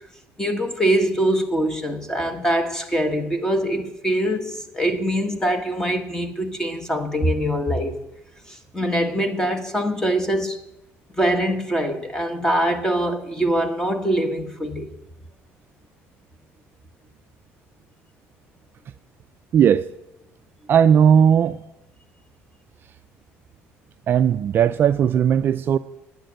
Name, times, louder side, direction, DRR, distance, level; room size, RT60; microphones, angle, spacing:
voice 1, 0.4-8.0 8.5-10.6 11.1-14.9, right 1 dB, 10° left, 1.4 m, -23 dB
voice 2, 19.5-19.9 20.7-21.6 24.1-25.8, right 8 dB, 45° right, 0.4 m, -17 dB
10.0 x 9.3 x 7.8 m
cardioid pair, 125°, 5 cm